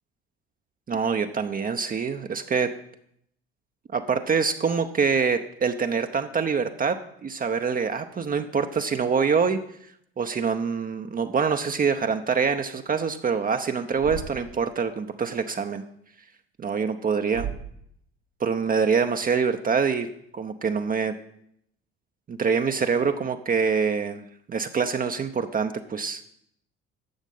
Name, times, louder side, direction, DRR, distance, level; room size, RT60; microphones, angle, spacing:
voice 1, 0.9-2.7 3.9-9.6 10.2-15.8 16.6-17.5 18.4-20.1 20.3-21.1 22.3-24.2 24.5-26.2, right 5 dB, 30° right, 7 dB, 0.8 m, -25 dB
Thump thud, 14.0-14.6 17.3-17.9, right 9 dB, 65° right, 1.1 m, -35 dB
11.5 x 7.2 x 5.5 m, 0.72 s
hypercardioid pair, 60°, 30 cm